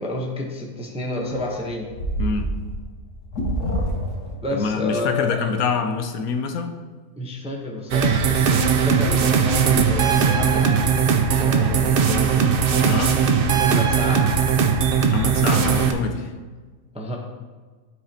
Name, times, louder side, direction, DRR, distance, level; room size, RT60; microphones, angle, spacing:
voice 1, 0.0-1.9 4.4-5.5 7.2-12.7 13.4-14.4 15.8-16.0 16.9-17.2, left 1 dB, 5° right, 0 dB, 0.6 m, -30 dB
sound 1, 1.2-4.7, right 1 dB, 90° left, 1.5 m, -27 dB
voice 2, 2.2-2.5 4.5-6.8 12.8-13.2 15.1-16.3, left 5 dB, 75° left, 6 dB, 1.1 m, -25 dB
sound 2, 7.9-15.9, right 6 dB, 60° right, 0.6 m, -19 dB
12.0 x 4.9 x 2.8 m, 1.4 s
omnidirectional pair, 1.6 m